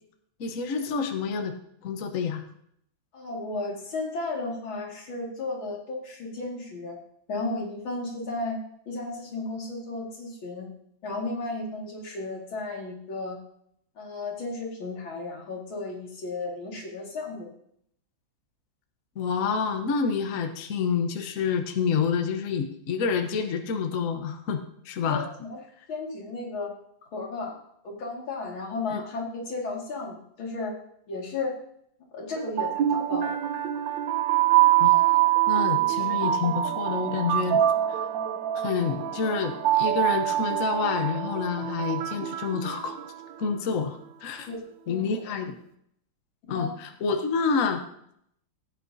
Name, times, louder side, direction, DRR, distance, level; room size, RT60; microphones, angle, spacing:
voice 1, 0.4-1.5 1.8-2.4 19.2-25.2 28.9-29.0 34.8-35.0 35.5-37.6 37.9-38.0 38.6-43.0 43.4-44.5 44.9-45.6 46.5-47.8, left 5 dB, 50° left, 5 dB, 1.2 m, -28 dB
voice 2, 3.1-7.0 7.3-8.6 8.9-10.7 11.0-13.4 14.0-17.5 25.0-25.6 25.9-26.7 27.1-27.6 27.8-30.7 31.1-31.6 32.1-33.4 44.5-44.6 44.9-45.0 45.3-45.4 46.5-46.7, left 3 dB, 90° left, -2 dB, 3.0 m, -34 dB
sound 1, 32.4-43.4, right 13 dB, 75° right, 1.4 m, -25 dB
16.0 x 8.7 x 2.7 m, 0.72 s
omnidirectional pair, 2.1 m